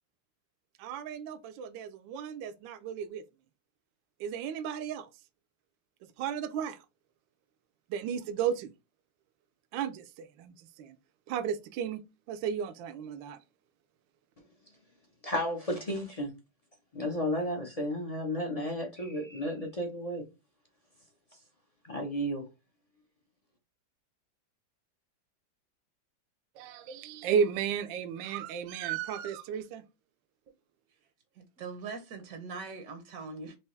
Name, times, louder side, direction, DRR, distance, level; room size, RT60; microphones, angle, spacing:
voice 1, 0.8-3.2 4.2-5.1 6.2-6.8 7.9-8.7 9.7-11.0 11.3-13.4 26.5-29.8, right 7 dB, 80° right, 1.3 m, -34 dB
voice 2, 15.2-16.3 16.9-20.2 21.8-22.5, equal, 40° left, 0.5 m, -33 dB
voice 3, 31.4-33.6, right 4 dB, 60° right, 1.0 m, -41 dB
4.6 x 3.0 x 3.1 m
omnidirectional pair, 2.1 m